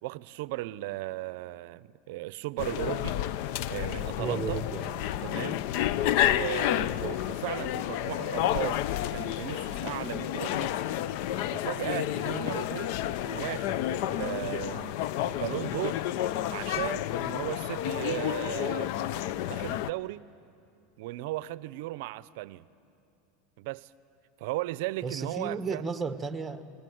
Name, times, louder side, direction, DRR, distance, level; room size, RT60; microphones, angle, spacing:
voice 1, 0.0-3.2 3.7-4.6 5.2-5.6 6.2-10.8 11.5-13.0 13.2-15.0 15.2-16.0 16.5-18.9 19.5-20.3 21.0-22.7 23.6-23.9 24.4-25.9, right 18 dB, 70° right, 18 dB, 0.5 m, -36 dB
sound 1, 2.6-19.9, left 12 dB, 60° left, 0.5 m, -30 dB
voice 2, 4.2-5.0 25.0-26.6, right 4 dB, 15° right, 10 dB, 1.0 m, -33 dB
29.0 x 19.5 x 7.9 m, 2.6 s
supercardioid pair, 130°, 0 cm